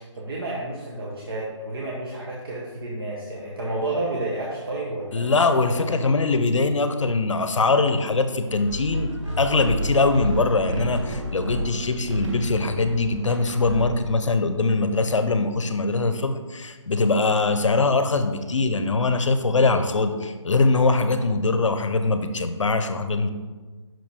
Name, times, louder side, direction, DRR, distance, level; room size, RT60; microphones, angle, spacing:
voice 1, 0.1-5.3 5.6-5.7, right 2 dB, 45° right, -5 dB, 1.1 m, -30 dB
voice 2, 5.1-9.1 9.4-23.3, left 3 dB, 70° left, 8 dB, 0.7 m, -22 dB
sound 1, 8.5-14.2, right 1 dB, 65° right, 1.5 m, -30 dB
5.8 x 5.1 x 3.5 m, 1.3 s
figure-of-eight pair, 170°, 16 cm